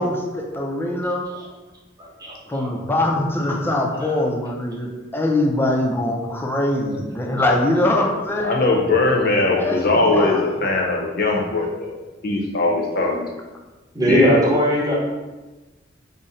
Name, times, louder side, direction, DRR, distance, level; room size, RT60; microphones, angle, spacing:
voice 1, 0.0-1.3 2.5-8.6 9.5-10.4, left 1 dB, 10° left, 0 dB, 0.4 m, -22 dB
voice 2, 2.2-2.7 4.0-4.2 6.9-7.3 13.9-15.0, equal, 20° right, -5 dB, 0.9 m, -21 dB
voice 3, 8.4-11.9 12.2-13.2 14.1-14.4, left 2 dB, 50° left, 0 dB, 0.6 m, -20 dB
3.8 x 2.0 x 3.9 m, 1.2 s
head